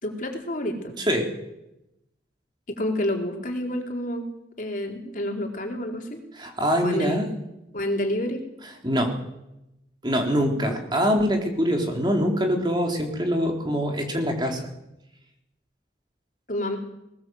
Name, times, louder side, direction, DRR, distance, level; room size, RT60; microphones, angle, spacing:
voice 1, 0.0-0.9 2.7-4.3 4.6-6.2 6.8-7.3 7.7-8.4 10.5-10.7 16.5-16.8, left 1 dB, 45° left, 2 dB, 4.1 m, -29 dB
voice 2, 1.0-1.3 6.3-7.3 8.8-9.1 10.0-14.7, equal, 25° right, 2 dB, 4.0 m, -24 dB
20.0 x 20.0 x 8.0 m, 0.90 s
head